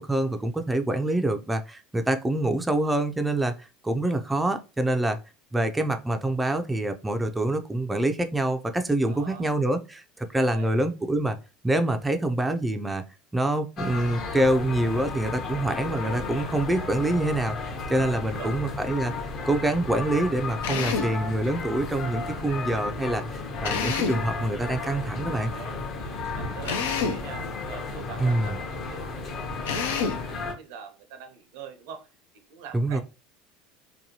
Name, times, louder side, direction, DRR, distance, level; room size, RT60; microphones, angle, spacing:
voice 1, 0.0-5.2 5.5-11.4 11.6-13.0 13.3-19.1 19.4-25.5 28.2-28.5 32.7-33.0, right 1 dB, 10° right, 6 dB, 0.3 m, -26 dB
voice 2, 9.0-9.5 10.4-10.7 18.2-18.5 25.3-32.1 32.5-33.0, right 7 dB, 75° right, 6 dB, 0.6 m, -44 dB
sound 1, 13.8-30.5, left 3 dB, 50° left, 0.8 m, -34 dB
Drill, 20.6-21.2 23.6-24.3 26.6-27.3 29.6-30.3, left 6 dB, 90° left, 0.4 m, -28 dB
2.7 x 2.2 x 2.8 m, 0.31 s
supercardioid pair, 100°, 0 cm